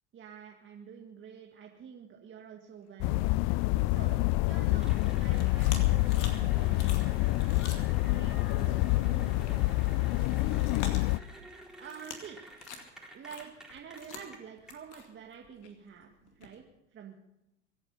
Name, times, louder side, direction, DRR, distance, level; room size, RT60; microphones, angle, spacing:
voice 1, 0.1-3.3 3.9-7.2 7.7-10.9 11.8-12.4 13.1-16.6 16.9-17.2, right 7 dB, 35° right, 1 dB, 1.9 m, -48 dB
sound 1, 3.0-11.2, left 20 dB, 50° left, 0.5 m, -27 dB
sound 2, 3.1-4.8 5.1-8.3 8.8-9.0 9.4-9.6 9.8-11.5 11.8-12.2 12.5-16.6, left 6 dB, 80° left, 2.4 m, -46 dB
Cheering / Applause, 4.7-14.7, right 1 dB, ahead, 4.1 m, -50 dB
24.0 x 8.9 x 5.5 m, 0.90 s
hypercardioid pair, 85°, 33 cm